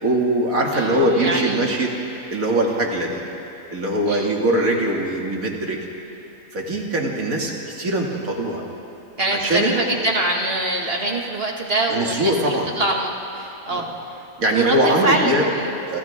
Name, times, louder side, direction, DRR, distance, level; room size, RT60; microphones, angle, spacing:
voice 1, 0.0-3.2 3.7-5.8 6.5-8.6 9.3-9.7 11.9-12.8 13.7-13.9 14.4-15.5 15.9-16.0, right 1 dB, 85° right, -1 dB, 2.9 m, -22 dB
voice 2, 0.7-1.6 4.1-4.3 9.2-13.9 14.5-15.7, right 1 dB, 45° right, 0 dB, 2.2 m, -24 dB
29.0 x 27.5 x 3.7 m, 2.9 s
omnidirectional pair, 1.4 m